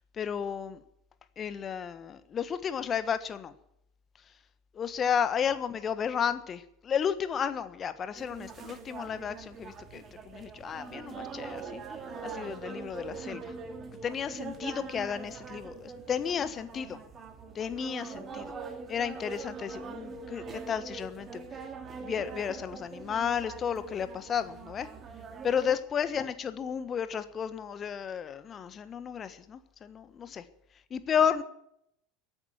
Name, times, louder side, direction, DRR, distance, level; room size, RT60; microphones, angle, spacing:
voice 1, 0.1-0.8 1.4-3.5 4.7-11.8 12.2-13.5 14.0-17.0 17.5-18.5 18.9-21.6 22.0-24.9 25.4-30.4 30.9-31.4, left 7 dB, 30° left, 13 dB, 1.4 m, -32 dB
sound 1, 8.2-25.8, right 5 dB, 30° right, 2.2 m, -43 dB
15.0 x 8.9 x 9.7 m, 0.75 s
figure-of-eight pair, 70°, 0 cm